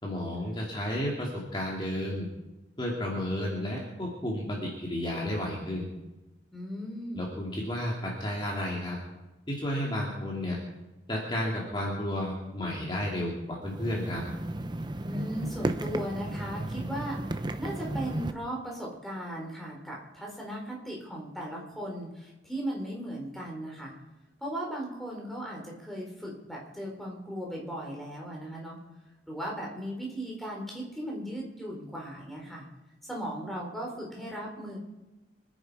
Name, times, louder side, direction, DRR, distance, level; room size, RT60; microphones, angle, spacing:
voice 1, 0.0-2.3 2.8-5.9 7.1-9.0 9.5-10.6 11.1-14.2, left 1 dB, 25° left, -3 dB, 2.5 m, -32 dB
voice 2, 6.5-7.3 15.0-17.2 17.6-23.9 24.4-28.8 29.3-32.7 33.0-34.8, equal, ahead, -2 dB, 4.0 m, -37 dB
sound 1, 13.7-18.3, right 1 dB, 25° right, 0.7 m, -34 dB
25.5 x 10.0 x 4.8 m, 1.0 s
head